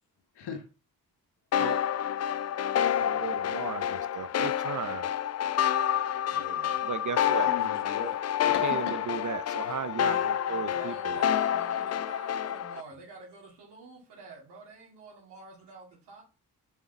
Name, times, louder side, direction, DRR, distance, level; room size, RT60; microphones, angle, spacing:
sound 1, 1.5-12.8, left 10 dB, 40° left, 0.4 m, -28 dB
voice 1, 3.0-5.1 6.8-7.5 8.4-11.3, right 8 dB, 50° right, 0.6 m, -36 dB
voice 2, 6.3-6.8 7.5-8.2 8.5-9.0, left 5 dB, 80° left, 1.4 m, -38 dB
voice 3, 10.7-16.2, right 4 dB, 85° right, 2.2 m, -48 dB
7.0 x 3.9 x 5.9 m
supercardioid pair, 55°, 40 cm